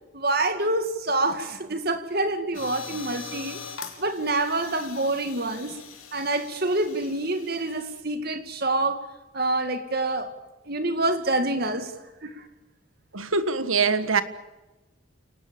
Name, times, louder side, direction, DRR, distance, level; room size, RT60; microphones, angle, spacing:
voice 1, 0.1-3.6 4.0-5.8 6.1-9.0 9.3-10.3 10.7-11.9 12.2-12.4, right 2 dB, 45° right, 2.3 m, -26 dB
sound 1, 2.5-8.0, left 6 dB, 80° left, 3.4 m, -42 dB
voice 2, 13.1-14.2, right 4 dB, 80° right, 1.7 m, -23 dB
29.5 x 19.0 x 7.1 m
head